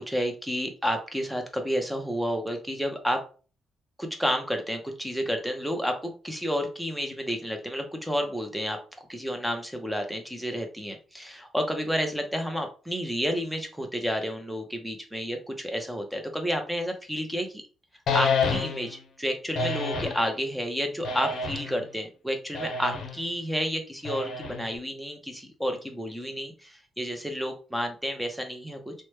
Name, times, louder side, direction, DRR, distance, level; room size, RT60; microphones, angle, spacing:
voice 1, 0.0-3.2 4.0-8.8 9.1-17.6 18.1-28.9, equal, ahead, 4 dB, 0.7 m, -30 dB
sound 1, 18.1-19.0 19.5-20.2 21.0-21.8 22.5-23.2 24.0-24.8, left 4 dB, 65° left, 0.6 m, -28 dB
2.9 x 2.1 x 3.2 m, 0.37 s
cardioid pair, 90°, 0 cm